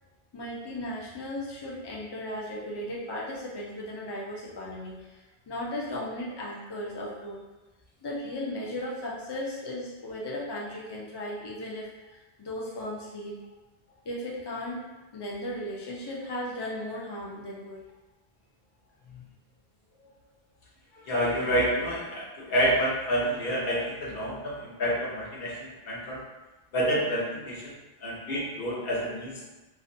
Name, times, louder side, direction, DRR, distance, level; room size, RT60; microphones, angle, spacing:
voice 1, 0.3-7.4 8.0-13.4 14.0-17.8 19.0-19.3, left 1 dB, 40° left, -4 dB, 0.3 m, -36 dB
voice 2, 20.9-26.2 26.7-27.7 28.0-29.3, equal, 65° left, -5 dB, 0.9 m, -28 dB
2.5 x 2.1 x 2.6 m, 1.1 s
omnidirectional pair, 1.1 m